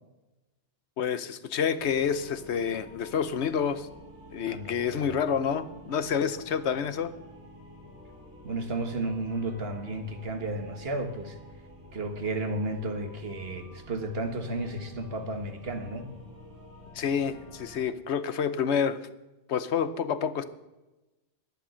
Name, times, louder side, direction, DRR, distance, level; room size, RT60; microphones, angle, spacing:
voice 1, 1.0-3.9 4.3-7.1 16.9-19.0 19.5-20.4, left 7 dB, 80° left, 13 dB, 1.1 m, -28 dB
sound 1, 1.8-17.8, left 1 dB, 10° right, 5.8 m, -50 dB
voice 2, 4.5-5.2 8.4-11.4 11.9-16.1, right 2 dB, 65° right, 6 dB, 1.7 m, -33 dB
11.5 x 10.5 x 6.3 m, 1.0 s
omnidirectional pair, 1.1 m